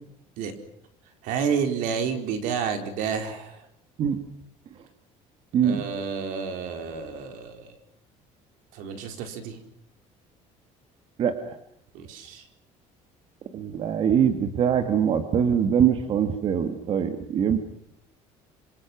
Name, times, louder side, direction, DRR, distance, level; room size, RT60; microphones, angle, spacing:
voice 1, 1.2-3.6 5.6-7.7 8.7-9.6 11.9-12.4, right 6 dB, 75° right, 6 dB, 4.4 m, -30 dB
voice 2, 5.5-5.8 11.2-11.5 13.5-17.6, right 8 dB, 40° right, 8 dB, 1.9 m, -23 dB
26.5 x 26.0 x 6.1 m, 0.70 s
cardioid pair, 165°, 14 cm